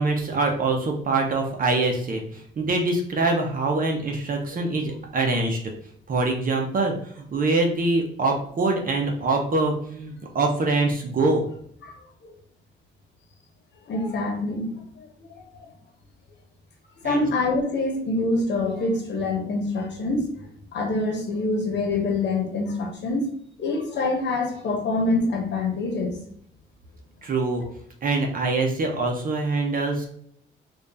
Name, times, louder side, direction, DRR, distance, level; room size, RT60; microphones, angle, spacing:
voice 1, 0.0-5.6 6.1-11.4 17.0-17.3 27.2-27.6 28.0-30.1, right 3 dB, 45° right, 2 dB, 0.8 m, -24 dB
voice 2, 13.9-15.3 15.5-15.7 17.0-20.3 20.7-23.3 23.6-26.2 27.6-27.7, left 2 dB, 60° left, 1 dB, 1.0 m, -25 dB
3.3 x 2.5 x 4.0 m, 0.64 s
cardioid pair, 90°, 20 cm